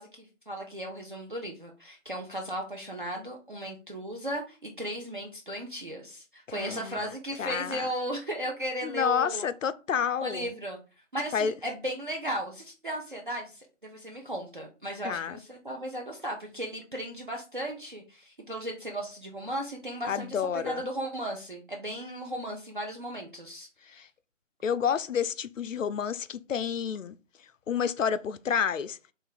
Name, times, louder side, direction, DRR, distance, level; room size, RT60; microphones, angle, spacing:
voice 1, 0.0-9.4 10.2-10.8 11.1-24.1, right 1 dB, 40° right, 0.5 m, -36 dB
voice 2, 6.5-7.1 7.4-7.9 8.8-10.5 11.3-11.5 15.0-15.4 20.1-20.8 23.9-24.1 24.6-27.2 27.7-29.0, left 7 dB, 85° left, 0.5 m, -29 dB
3.2 x 2.5 x 3.8 m
figure-of-eight pair, 170°, 38 cm